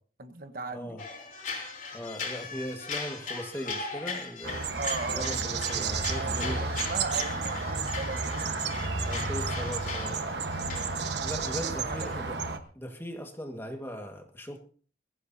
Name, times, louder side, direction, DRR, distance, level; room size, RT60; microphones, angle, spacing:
voice 1, 0.2-1.0 4.8-5.4 6.2-8.2 10.5-10.9 11.5-12.4, right 3 dB, 50° right, 9 dB, 1.3 m, -38 dB
voice 2, 0.7-1.0 1.9-4.6 5.1-6.7 9.0-10.2 11.2-12.4 12.7-14.6, equal, 15° left, 4 dB, 1.8 m, -39 dB
sound 1, 1.0-12.2, left 4 dB, 45° left, 4.1 m, -39 dB
sound 2, 4.4-12.6, right 4 dB, 70° right, 1.3 m, -31 dB
22.0 x 15.0 x 2.8 m, 0.43 s
head